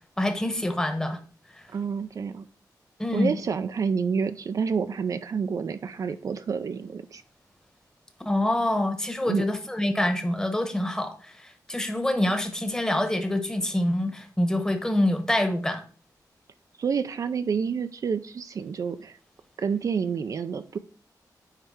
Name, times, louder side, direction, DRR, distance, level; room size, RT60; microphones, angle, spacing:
voice 1, 0.2-1.2 3.0-3.4 8.2-15.8, left 1 dB, 10° left, 7 dB, 1.1 m, -26 dB
voice 2, 1.7-2.5 3.1-7.2 9.3-9.5 16.8-19.2 19.6-20.8, right 6 dB, 55° right, 9 dB, 0.5 m, -28 dB
9.5 x 3.3 x 4.9 m, 0.38 s
wide cardioid pair, 140°, 7 cm